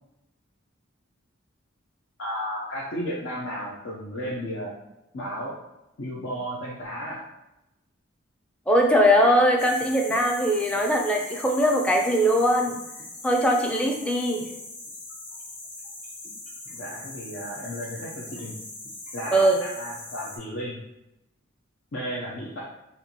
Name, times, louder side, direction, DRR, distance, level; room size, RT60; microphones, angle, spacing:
voice 1, 2.2-4.7 5.1-5.5 6.0-7.2 16.7-18.5 19.1-20.8 21.9-22.6, equal, 65° left, -6 dB, 0.6 m, -33 dB
voice 2, 8.7-12.8 13.2-14.4 19.3-19.6, equal, 5° left, 0 dB, 0.4 m, -21 dB
sound 1, 9.6-20.4, left 2 dB, 40° left, 0.9 m, -41 dB
4.3 x 2.6 x 2.8 m, 0.91 s
head